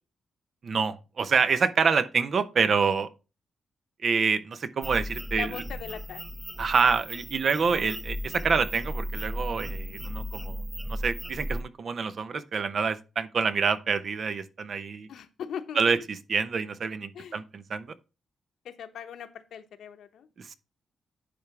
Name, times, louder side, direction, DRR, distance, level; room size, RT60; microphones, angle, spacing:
voice 1, 0.6-3.1 4.0-5.5 6.6-10.6 10.9-15.1 15.8-16.0 16.3-17.9 20.4-20.5, right 5 dB, 55° right, 0.7 m, -27 dB
sound 1, 4.8-11.6, equal, 10° right, 0.9 m, -35 dB
voice 2, 5.3-6.3 15.1-16.1 17.1-17.5 18.6-20.3, left 8 dB, 80° left, 1.0 m, -40 dB
10.0 x 3.4 x 5.9 m
cardioid pair, 80°, 0 cm